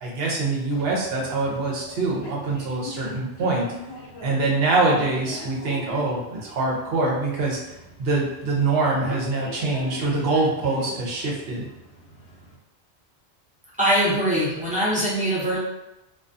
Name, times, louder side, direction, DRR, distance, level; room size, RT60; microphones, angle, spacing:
voice 1, 0.0-3.7 4.2-7.6 8.0-11.7, right 3 dB, 65° right, -2 dB, 0.8 m, -24 dB
sound 1, 0.7-12.6, left 2 dB, 75° left, 0.9 m, -41 dB
voice 2, 13.8-15.6, equal, 10° right, -8 dB, 0.5 m, -22 dB
2.3 x 2.2 x 2.5 m, 0.91 s
omnidirectional pair, 1.1 m